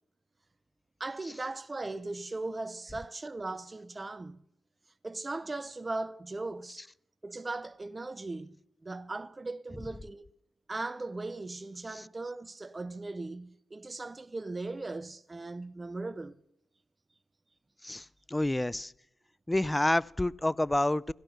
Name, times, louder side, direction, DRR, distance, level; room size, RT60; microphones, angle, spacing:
voice 1, 1.0-4.4 5.0-6.8 7.2-8.6 8.8-10.3 10.7-16.4, right 2 dB, 30° right, 0.8 m, -38 dB
voice 2, 17.8-18.9 19.5-21.1, left 1 dB, 15° left, 0.5 m, -29 dB
17.0 x 12.5 x 6.0 m
cardioid pair, 55°, 0 cm